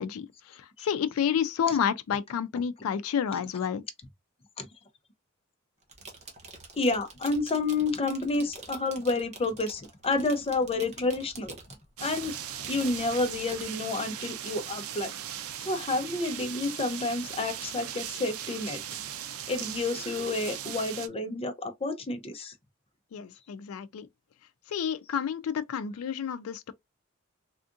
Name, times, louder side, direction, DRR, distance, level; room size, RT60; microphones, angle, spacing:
voice 1, 0.0-3.8 23.1-24.1 24.7-26.7, left 8 dB, 85° left, 0.4 m, -30 dB
sound 1, 5.8-13.6, right 3 dB, 30° right, 0.8 m, -47 dB
voice 2, 6.8-11.6 12.0-12.3 12.6-15.1 15.6-18.8 19.5-22.5, left 3 dB, 25° left, 0.5 m, -29 dB
sound 2, 12.0-21.1, right 10 dB, 90° right, 0.5 m, -38 dB
3.5 x 2.4 x 2.5 m
head